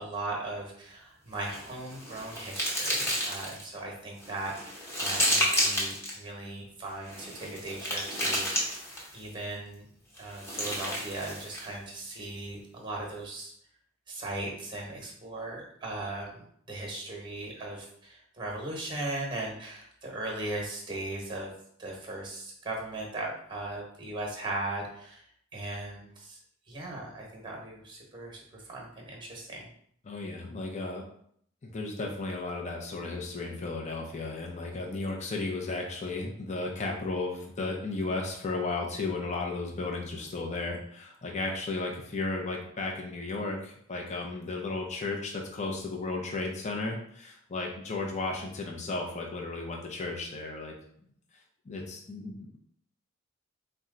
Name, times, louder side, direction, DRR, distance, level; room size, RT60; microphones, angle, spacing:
voice 1, 0.0-8.8 9.1-9.8 10.2-13.5 14.1-21.5 21.8-25.2 25.5-26.4 26.7-29.7, right 2 dB, 25° right, 0 dB, 1.0 m, -38 dB
sound 1, 1.4-3.7 4.2-6.2 7.0-9.2 10.2-11.7, equal, 15° left, 1.0 m, -31 dB
voice 2, 30.0-31.1 31.6-50.7 51.7-52.6, left 3 dB, 35° left, 0 dB, 0.6 m, -34 dB
4.2 x 2.2 x 3.7 m, 0.65 s
head